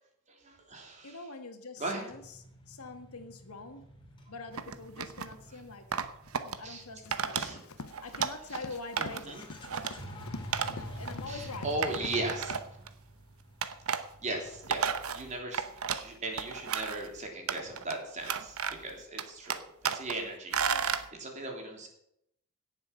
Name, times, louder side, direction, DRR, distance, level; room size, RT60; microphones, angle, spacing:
voice 1, 0.3-1.2 1.8-2.0 6.6-6.8 7.3-7.6 9.0-9.4 11.3-12.5 13.9-21.9, right 2 dB, 35° right, 2 dB, 3.1 m, -38 dB
voice 2, 1.0-3.8 4.3-5.8 6.3-10.4 10.7-11.7 13.9-14.6 15.9-16.1 20.7-20.9, left 3 dB, 90° left, 6 dB, 1.9 m, -45 dB
sound 1, 2.1-7.6 8.6-8.7 9.0-9.1 9.3-15.4, equal, 20° left, 2.7 m, -47 dB
sound 2, 4.6-5.3 5.9-6.6 7.1-7.5 7.8-8.6 9.0-9.3 9.6-9.9 10.5-10.7 11.0-11.1 11.8-12.9 13.6-14.0 14.5-16.1 16.4-17.1 17.5-17.9 18.2-18.9 19.2-20.1 20.5-21.0, right 7 dB, 75° right, 0.9 m, -33 dB
Run, 7.0-12.2 12.5-12.6, left 3 dB, 75° left, 0.9 m, -46 dB
17.0 x 7.4 x 5.8 m, 0.76 s
head